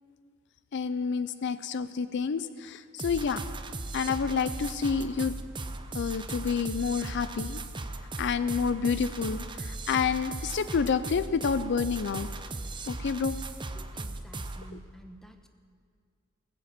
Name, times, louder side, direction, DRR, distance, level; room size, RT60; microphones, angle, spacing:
voice 1, 0.7-3.4 3.9-5.3 5.9-7.6 8.2-12.3 12.9-13.4, left 6 dB, 60° left, 13 dB, 0.4 m, -29 dB
sound 1, 3.0-14.7, right 2 dB, 25° right, 0.6 m, -37 dB
voice 2, 13.7-15.5, right 1 dB, ahead, 5 dB, 0.9 m, -50 dB
19.5 x 7.7 x 7.5 m, 2.1 s
head